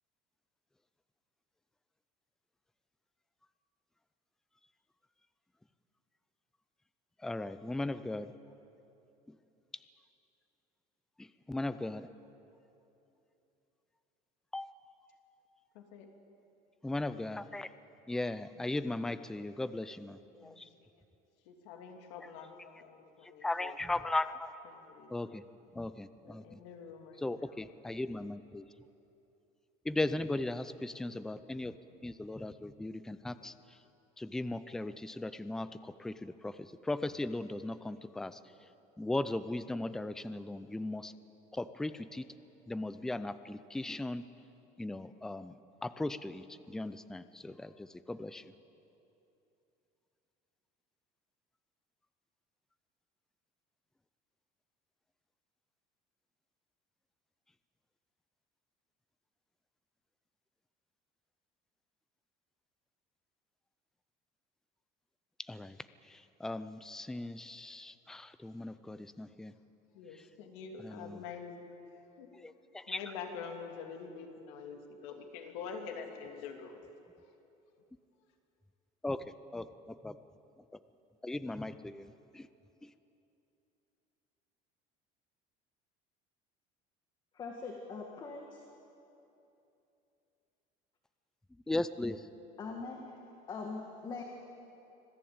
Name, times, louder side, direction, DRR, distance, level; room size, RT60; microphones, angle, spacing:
voice 1, 7.2-8.3 9.3-9.4 9.7-9.8 11.2-12.1 14.5-14.7 16.8-17.7 18.1-20.7 22.2-22.3 23.2-24.5 25.1-25.4 25.7-26.6 27.2-28.7 29.8-31.8 32.0-33.8 34.2-38.7 39.0-41.1 41.5-42.2 42.7-44.3 44.8-48.5 65.4-69.5 70.1-70.2 70.8-71.2 72.3-73.0 79.0-80.2 80.7-80.8 81.2-82.5 82.8-82.9 91.7-92.3, left 2 dB, 5° left, 13 dB, 0.4 m, -38 dB
voice 2, 15.7-16.1 18.5-18.8 20.4-20.6 21.4-23.8 24.7-25.2 26.2-27.6 69.9-71.6 72.2-72.3 72.9-76.7, left 6 dB, 85° left, 3 dB, 3.0 m, -46 dB
voice 3, 87.3-88.6 92.6-93.2 93.5-94.2, left 4 dB, 25° left, 1 dB, 1.8 m, -42 dB
25.5 x 16.0 x 8.8 m, 2.9 s
cardioid pair, 170°, 16 cm